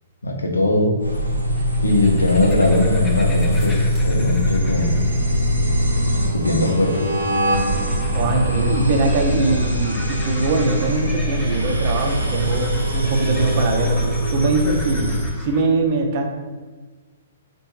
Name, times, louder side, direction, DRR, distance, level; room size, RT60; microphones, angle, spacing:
voice 1, 0.2-0.9 1.8-5.0 6.3-7.0, left 2 dB, 75° left, 2 dB, 0.8 m, -20 dB
sound 1, 1.0-15.3, equal, 85° right, 0.8 m, -22 dB
sound 2, 1.5-15.6, left 2 dB, 15° left, 0.6 m, -39 dB
voice 2, 8.1-16.3, right 3 dB, 40° right, 2 dB, 0.7 m, -22 dB
4.3 x 2.6 x 4.6 m, 1.4 s
figure-of-eight pair, 115°, 0 cm